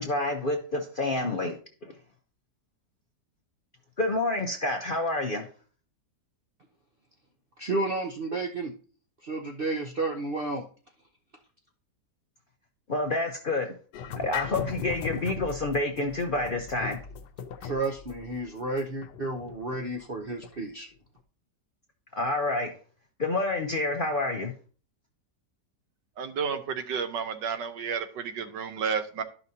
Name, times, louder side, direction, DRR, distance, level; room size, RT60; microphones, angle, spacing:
voice 1, 0.0-1.9 4.0-5.5 12.9-13.7 14.2-17.0 22.2-22.7 23.2-24.5, left 2 dB, 50° left, 0.6 m, -28 dB
voice 2, 7.6-8.7 9.2-10.6 17.6-20.9, right 2 dB, 50° right, 0.6 m, -31 dB
sound 1, 13.9-20.7, left 6 dB, 75° left, 1.2 m, -38 dB
voice 3, 26.2-29.2, right 6 dB, 85° right, 1.5 m, -31 dB
12.0 x 5.5 x 2.7 m
omnidirectional pair, 1.9 m